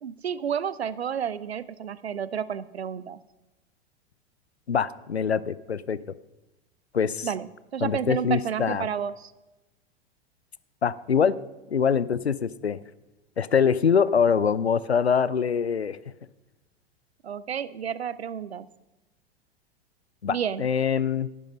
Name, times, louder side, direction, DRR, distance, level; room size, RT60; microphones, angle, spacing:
voice 1, 0.0-3.2 7.2-9.3 17.2-18.7 20.3-20.7, right 8 dB, 80° right, 18 dB, 0.6 m, -31 dB
voice 2, 4.7-6.0 6.9-7.3 7.8-8.9 10.8-11.4 11.7-12.8 13.4-16.0 20.2-21.3, left 6 dB, 85° left, 19 dB, 0.5 m, -24 dB
11.0 x 10.0 x 5.2 m, 1.0 s
figure-of-eight pair, 90°, 31 cm